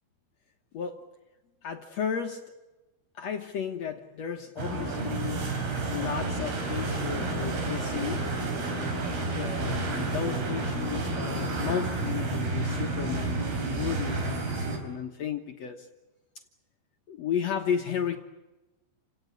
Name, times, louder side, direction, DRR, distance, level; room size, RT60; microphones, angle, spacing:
voice 1, 1.6-2.4 3.2-5.4 5.9-8.3 9.3-15.9 17.1-18.2, left 8 dB, 65° left, 5 dB, 1.8 m, -33 dB
sound 1, 4.6-14.8, right 3 dB, 75° right, 5.9 m, -30 dB
29.5 x 18.0 x 9.7 m, 1.1 s
omnidirectional pair, 4.6 m